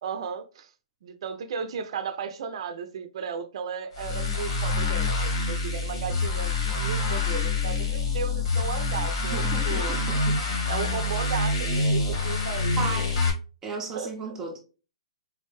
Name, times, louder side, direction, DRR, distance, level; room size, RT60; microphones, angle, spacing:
voice 1, 0.0-0.7 1.0-10.0 10.7-12.8 14.0-14.3, right 6 dB, 60° right, 0.5 m, -35 dB
sound 1, 3.9-13.3, left 3 dB, 70° left, 1.8 m, -26 dB
voice 2, 9.3-10.6 12.8-13.2 13.6-14.6, right 4 dB, 15° right, 0.6 m, -35 dB
4.1 x 2.1 x 3.1 m
hypercardioid pair, 140°, 3 cm